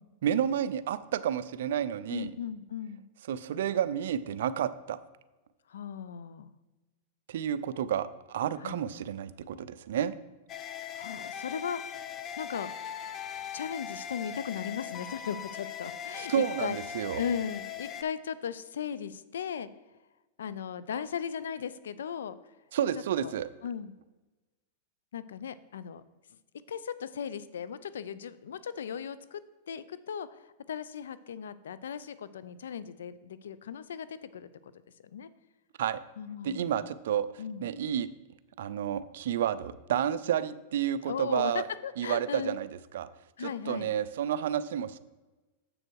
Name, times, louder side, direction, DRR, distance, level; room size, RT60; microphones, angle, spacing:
voice 1, 0.2-2.3 3.3-5.0 7.3-10.1 16.2-17.2 22.7-23.5 35.8-36.0 36.4-38.1 38.6-41.6 42.0-42.7 42.9-43.1 43.4-45.0, right 9 dB, 75° right, 14 dB, 0.5 m, -30 dB
voice 2, 2.1-3.0 5.7-6.5 8.6-8.8 10.9-12.0 12.4-12.7 13.5-16.8 17.2-19.7 20.4-22.4 23.2-23.3 23.6-23.9 25.1-26.0 26.7-34.7 35.1-35.3 36.2-36.8 37.4-37.7 41.1-42.6 43.4-43.9, left 7 dB, 90° left, 15 dB, 0.4 m, -37 dB
sound 1, 10.5-18.0, left 9 dB, 30° left, 0.6 m, -40 dB
7.7 x 6.3 x 4.6 m, 1.2 s
hypercardioid pair, 135°, 0 cm